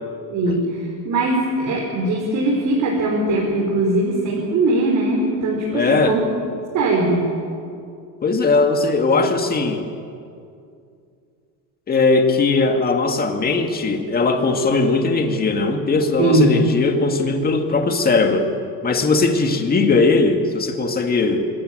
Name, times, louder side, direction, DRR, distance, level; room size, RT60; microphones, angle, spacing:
voice 1, 0.3-6.2 6.7-7.3 16.2-16.6, right 2 dB, 50° right, -2 dB, 4.3 m, -20 dB
voice 2, 5.7-6.2 8.2-9.8 11.9-18.5 18.8-21.5, left 3 dB, 25° left, 5 dB, 2.0 m, -19 dB
25.0 x 13.5 x 9.0 m, 2.4 s
cardioid pair, 140°, 37 cm